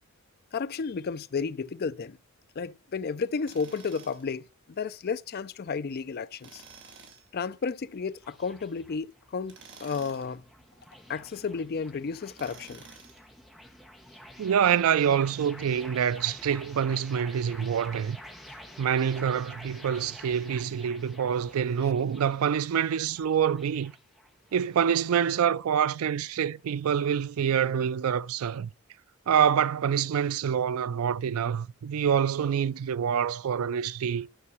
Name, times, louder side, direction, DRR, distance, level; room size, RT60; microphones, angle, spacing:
voice 1, 0.5-2.2 2.6-4.5 4.8-6.6 7.3-10.4 11.1-12.8, left 5 dB, 45° left, 0.4 m, -32 dB
Tools, 3.5-4.3 6.4-7.3 9.4-10.3 12.3-13.3, right 5 dB, 55° right, 2.3 m, -50 dB
sound 1, 6.3-25.2, equal, ahead, 1.1 m, -50 dB
voice 2, 14.4-18.2 18.8-23.9 24.5-28.7 29.3-34.3, right 8 dB, 85° right, 0.4 m, -26 dB
11.5 x 4.6 x 6.9 m
head